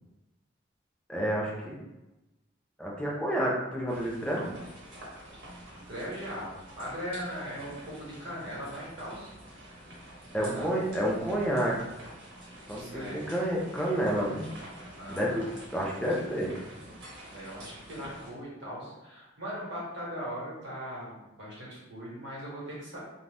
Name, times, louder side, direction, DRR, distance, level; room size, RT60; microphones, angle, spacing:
voice 1, 1.1-1.8 2.8-4.6 10.3-11.8 12.7-14.4 15.1-15.4 15.7-16.5, equal, 5° left, -3 dB, 0.5 m, -29 dB
sound 1, 3.9-18.3, right 1 dB, 80° right, 1.0 m, -48 dB
voice 2, 5.8-9.3 10.3-10.7 12.8-13.2 15.0-15.4 17.3-23.0, equal, 60° right, -6 dB, 1.2 m, -39 dB
2.6 x 2.3 x 3.3 m, 1.0 s
head